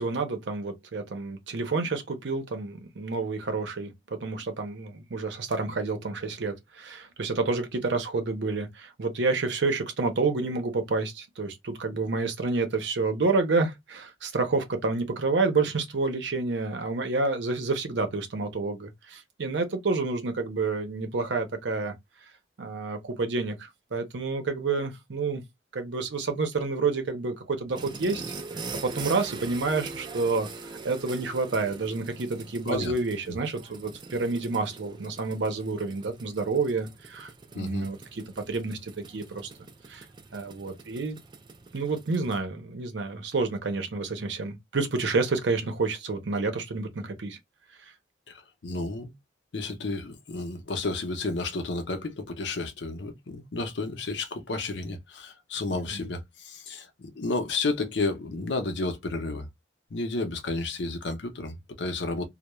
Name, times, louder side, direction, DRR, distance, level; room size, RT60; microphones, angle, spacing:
voice 1, 0.0-21.9 22.6-25.4 25.7-28.2 28.5-30.5 30.8-39.5 39.9-40.0 40.3-41.2 41.7-47.4 47.8-47.9 55.9-56.0, right 3 dB, 75° right, 0.6 m, -29 dB
sound 1, 27.7-42.4, right 4 dB, 25° right, 0.3 m, -43 dB
voice 2, 37.6-37.9 48.3-49.1 49.5-59.5 59.9-62.3, left 3 dB, 70° left, 0.6 m, -32 dB
2.2 x 2.1 x 2.9 m
head